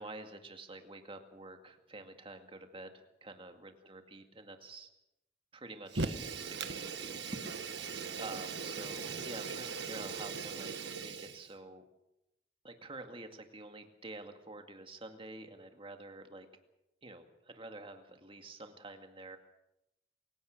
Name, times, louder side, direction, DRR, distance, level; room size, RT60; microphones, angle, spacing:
voice 1, 0.0-4.9 5.5-7.4 7.7-7.9 8.2-11.8 12.6-16.5 17.0-19.4, right 2 dB, 30° right, 5 dB, 2.2 m, -48 dB
Fire, 5.9-11.5, right 4 dB, 65° right, 1.5 m, -39 dB
28.0 x 17.0 x 6.6 m, 0.87 s
head